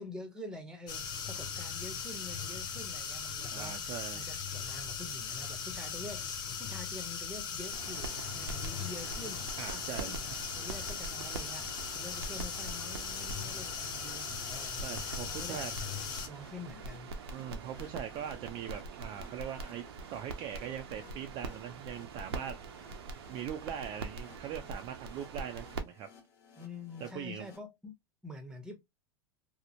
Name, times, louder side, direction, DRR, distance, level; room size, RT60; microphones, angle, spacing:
voice 1, 0.0-3.8 4.1-9.5 9.9-14.9 15.3-15.7 16.0-17.2 26.6-27.9 28.2-28.7, left 2 dB, 5° right, 0.7 m, -46 dB
sound 1, 0.9-16.3, left 6 dB, 35° left, 0.6 m, -39 dB
voice 2, 3.5-4.3 9.6-10.2 14.8-15.7 17.3-19.8 20.1-22.6 23.3-26.1 27.0-27.5, right 9 dB, 35° right, 0.4 m, -41 dB
sound 2, 7.7-25.8, right 3 dB, 85° right, 0.6 m, -44 dB
sound 3, 12.8-27.6, left 4 dB, 60° left, 1.1 m, -60 dB
2.9 x 2.0 x 2.4 m
supercardioid pair, 130°, 13 cm